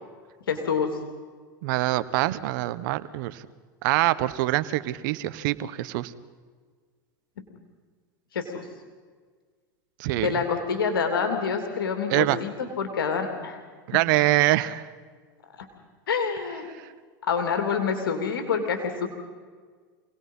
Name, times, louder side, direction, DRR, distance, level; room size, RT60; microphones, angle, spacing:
voice 1, 0.5-0.9 8.3-8.4 10.2-12.5 12.8-13.6 16.1-16.7 17.3-19.1, left 6 dB, 90° left, 4 dB, 3.1 m, -26 dB
voice 2, 1.6-3.4 3.8-6.1 10.0-10.4 12.1-12.4 13.9-14.8, right 17 dB, 65° right, 14 dB, 1.3 m, -24 dB
27.5 x 19.0 x 5.7 m, 1.6 s
hypercardioid pair, 110°, 11 cm